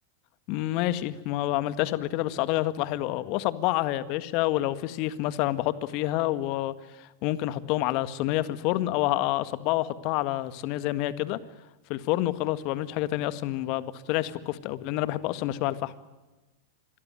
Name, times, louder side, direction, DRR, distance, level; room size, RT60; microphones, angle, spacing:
voice 1, 0.5-11.4 11.9-15.9, left 15 dB, 45° left, 14 dB, 1.7 m, -28 dB
27.0 x 22.0 x 9.1 m, 1.1 s
figure-of-eight pair, 95°, 0 cm